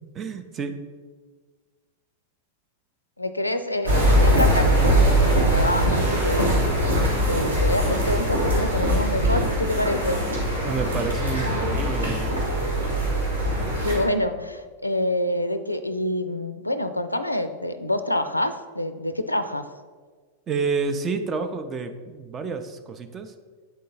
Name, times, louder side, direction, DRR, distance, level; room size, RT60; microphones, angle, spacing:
voice 1, 0.1-0.8 10.6-12.4 20.5-23.3, right 5 dB, 25° right, 8 dB, 0.5 m, -29 dB
voice 2, 3.2-6.6 7.3-10.2 13.8-19.7, left 1 dB, 85° left, 10 dB, 0.4 m, -27 dB
sound 1, 3.8-14.0, right 1 dB, 80° right, 1.8 m, -21 dB
8.3 x 3.7 x 4.1 m, 1.5 s
figure-of-eight pair, 90°, 0 cm